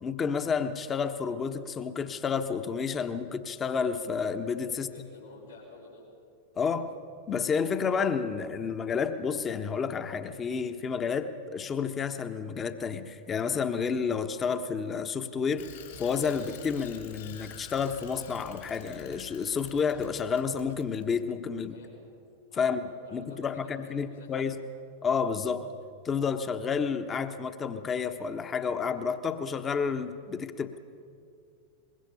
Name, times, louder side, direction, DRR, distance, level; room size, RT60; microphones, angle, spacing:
voice 1, 0.0-4.9 6.6-6.9 7.3-15.7 16.0-21.8 22.6-24.6 25.0-25.7 26.0-30.8, left 6 dB, 20° left, 9 dB, 1.2 m, -30 dB
voice 2, 4.7-6.0 21.5-21.9 22.5-22.7 23.0-24.4, left 3 dB, 80° left, -9 dB, 5.1 m, -50 dB
Bicycle, 15.6-21.1, left 8 dB, 60° left, 4.0 m, -48 dB
23.5 x 22.0 x 5.7 m, 2.4 s
figure-of-eight pair, 90°, 0 cm